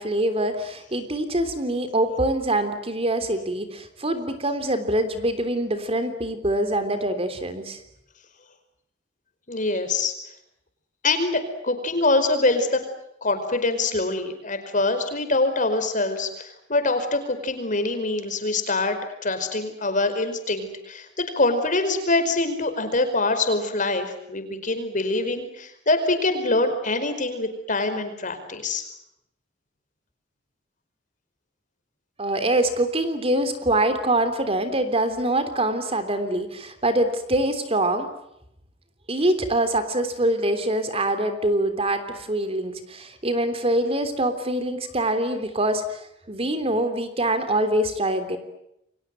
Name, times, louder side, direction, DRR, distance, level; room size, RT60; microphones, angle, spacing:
voice 1, 0.0-7.8 32.2-38.1 39.1-48.4, right 1 dB, 30° right, 9 dB, 3.4 m, -24 dB
voice 2, 9.5-10.1 11.0-12.8 13.2-28.8, left 2 dB, 45° left, 8 dB, 4.9 m, -24 dB
29.5 x 23.5 x 7.8 m, 0.78 s
head